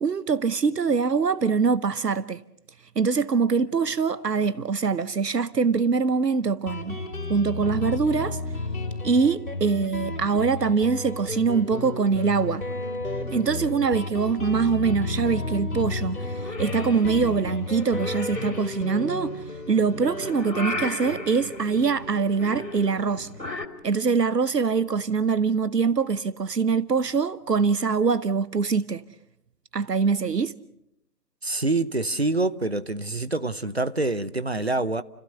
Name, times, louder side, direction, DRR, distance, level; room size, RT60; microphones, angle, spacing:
voice 1, 0.0-2.4 3.0-7.0 7.3-8.4 9.0-12.6 13.3-23.3 23.8-29.0 29.7-30.5, right 5 dB, 75° right, 1.0 m, -23 dB
Guitar, 6.7-23.9, left 2 dB, 60° left, 5.0 m, -33 dB
Purr / Meow, 16.2-23.7, left 2 dB, 90° left, 3.2 m, -37 dB
voice 2, 31.4-35.0, right 2 dB, 40° right, 0.8 m, -26 dB
30.0 x 16.0 x 6.8 m
figure-of-eight pair, 170°, 48 cm